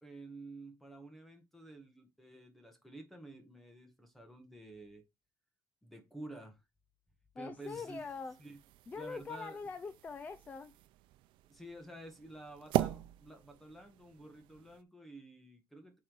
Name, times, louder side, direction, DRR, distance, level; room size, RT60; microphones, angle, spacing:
voice 1, 0.0-5.0 5.8-6.6 7.4-8.0 8.4-8.6 9.0-9.6 11.5-16.0, right 2 dB, ahead, 1.7 m, -51 dB
voice 2, 7.3-8.4 8.9-10.7, left 4 dB, 20° left, 0.5 m, -43 dB
sound 1, 7.6-14.8, right 15 dB, 85° right, 0.6 m, -41 dB
8.5 x 3.7 x 4.8 m
cardioid pair, 170°, 8 cm